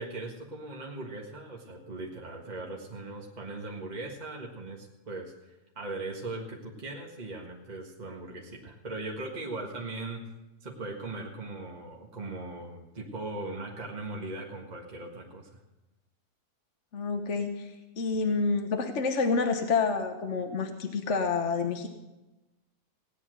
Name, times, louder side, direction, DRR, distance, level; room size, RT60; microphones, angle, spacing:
voice 1, 0.0-10.2 10.6-15.6, right 2 dB, 30° right, 0 dB, 1.7 m, -39 dB
voice 2, 16.9-21.9, left 4 dB, 55° left, 5 dB, 1.3 m, -28 dB
17.0 x 9.8 x 6.4 m, 1.0 s
omnidirectional pair, 1.6 m